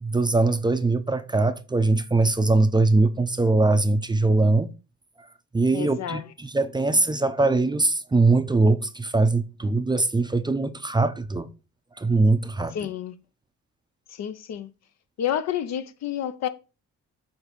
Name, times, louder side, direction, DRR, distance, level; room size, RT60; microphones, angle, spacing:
voice 1, 0.0-4.7 5.5-11.5 12.0-12.7, right 3 dB, 15° right, 0.5 m, -22 dB
voice 2, 5.7-6.3 12.7-13.1 14.1-14.7 15.2-16.5, left 10 dB, 60° left, 0.6 m, -29 dB
7.9 x 2.7 x 5.0 m
cardioid pair, 90°, 30 cm